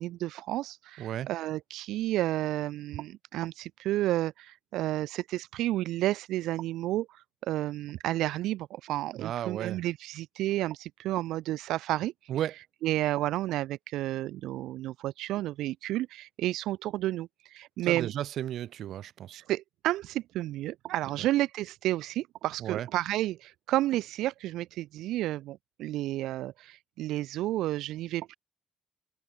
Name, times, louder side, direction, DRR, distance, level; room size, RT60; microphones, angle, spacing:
voice 1, 0.0-12.3 12.8-18.1 19.3-28.4, right 15 dB, 90° right, 2.0 m, -31 dB
voice 2, 1.0-1.3 9.2-9.8 12.3-12.5 17.8-19.4 22.6-22.9, right 11 dB, 75° right, 7.0 m, -34 dB
open air
cardioid pair, 90°, 0 cm